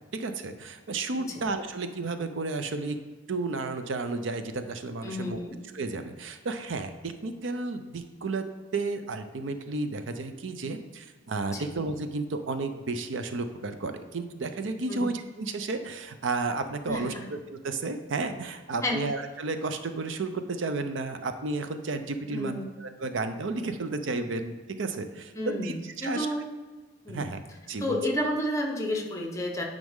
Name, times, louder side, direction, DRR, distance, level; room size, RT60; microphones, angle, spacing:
voice 1, 0.1-3.0 3.3-5.4 5.7-8.4 8.7-26.3 27.1-27.4 27.7-28.0, right 3 dB, 70° right, 8 dB, 0.5 m, -32 dB
voice 2, 5.0-5.6 11.5-11.7 14.9-15.0 16.9-17.2 18.8-19.0 22.3-22.7 25.3-26.5 27.0-27.3 27.8-29.6, left 1 dB, 15° left, 1 dB, 0.9 m, -31 dB
9.3 x 5.1 x 3.6 m, 1.4 s
head